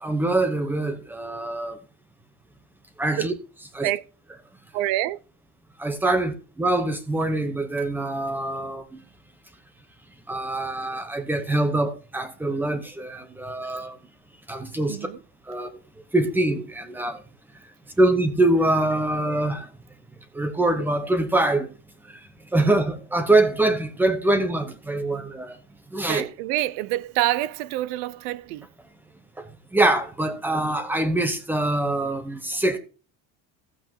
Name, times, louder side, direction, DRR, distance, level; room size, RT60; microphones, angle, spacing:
voice 1, 0.0-1.8 3.0-3.3 3.7-3.9 5.8-9.0 10.3-14.0 14.5-15.0 15.5-15.7 16.1-17.2 18.0-19.7 20.3-21.7 22.5-25.6 25.9-26.3 29.4-29.5 29.7-32.8, right 2 dB, 5° right, 0.9 m, -24 dB
voice 2, 4.7-5.2 6.0-6.2 14.9-15.2 26.0-28.7, right 15 dB, 85° right, 0.8 m, -27 dB
15.0 x 8.2 x 2.9 m
cardioid pair, 175°, 42 cm